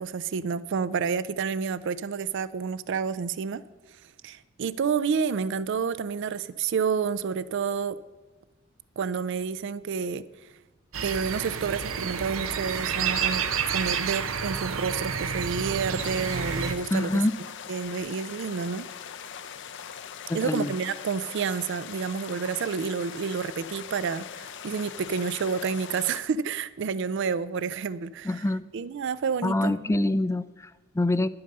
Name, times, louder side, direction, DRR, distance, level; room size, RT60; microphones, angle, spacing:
voice 1, 0.0-3.6 4.2-8.0 9.0-10.2 11.0-17.2 17.7-18.9 20.3-28.4 28.7-29.8, right 6 dB, 60° right, 16 dB, 0.4 m, -29 dB
sound 1, 10.9-16.8, right 6 dB, 80° right, 0.9 m, -29 dB
sound 2, 16.0-26.2, left 8 dB, 60° left, 0.5 m, -41 dB
voice 2, 16.9-17.4 20.3-20.7 28.2-28.7 29.4-31.3, left 1 dB, 15° left, 16 dB, 0.3 m, -25 dB
11.0 x 8.6 x 6.6 m, 1.2 s
head